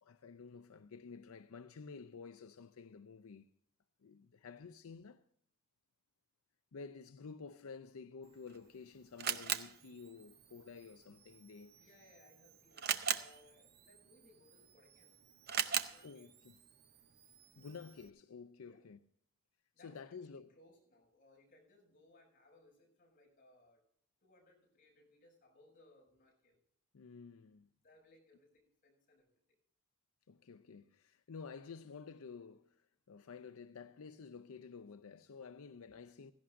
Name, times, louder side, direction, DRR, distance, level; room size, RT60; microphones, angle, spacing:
voice 1, 0.0-3.5 4.0-5.2 6.7-11.8 16.0-16.6 17.6-19.0 19.8-20.6 26.9-27.7 30.3-36.3, left 5 dB, 85° left, 0.5 m, -51 dB
Camera, 8.2-18.1, right 8 dB, 45° right, 0.7 m, -42 dB
voice 2, 11.7-15.3 15.5-16.3 18.6-18.8 19.7-23.8 24.2-26.6 27.8-29.3, left 2 dB, 40° left, 6.9 m, -66 dB
17.0 x 15.0 x 2.5 m
head